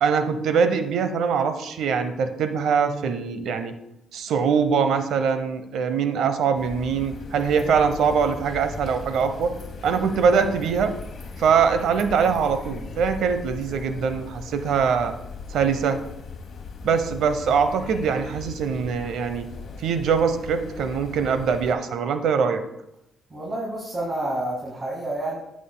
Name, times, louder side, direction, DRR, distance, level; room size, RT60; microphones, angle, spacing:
voice 1, 0.0-3.7 4.1-9.5 9.8-10.9 11.4-15.1 15.5-16.0 16.8-19.5 19.8-22.6, right 6 dB, 75° right, 9 dB, 0.8 m, -23 dB
sound 1, 6.5-21.7, left 4 dB, 55° left, 1.0 m, -39 dB
voice 2, 23.3-25.4, right 1 dB, 35° right, -3 dB, 1.9 m, -29 dB
11.0 x 7.4 x 2.2 m, 0.83 s
cardioid pair, 90°, 0 cm